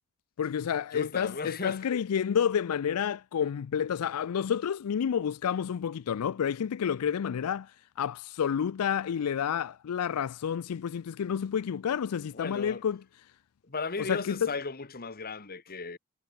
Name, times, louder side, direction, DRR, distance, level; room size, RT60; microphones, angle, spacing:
voice 1, 0.4-13.0 14.0-14.5, left 8 dB, 80° left, 0.4 m, -30 dB
voice 2, 0.9-1.9 12.3-12.8 13.6-16.0, left 4 dB, 45° left, 1.5 m, -36 dB
head